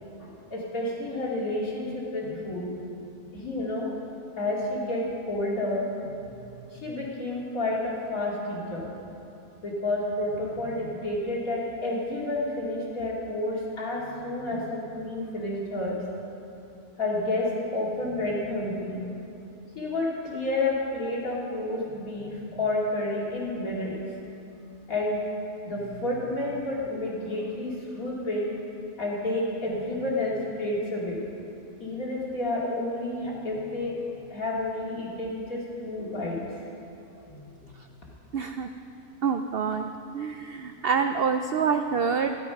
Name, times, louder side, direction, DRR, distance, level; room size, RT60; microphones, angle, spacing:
voice 1, 0.2-2.7 3.3-3.9 4.4-8.9 9.6-16.0 17.0-19.0 19.7-23.9 24.9-25.2 25.6-28.5 29.0-31.2 31.8-36.4 37.3-37.9, left 2 dB, 65° left, -5 dB, 3.0 m, -30 dB
voice 2, 38.3-38.7 39.2-42.4, right 6 dB, 80° right, 7 dB, 0.5 m, -27 dB
14.0 x 11.5 x 5.8 m, 2.9 s
omnidirectional pair, 1.6 m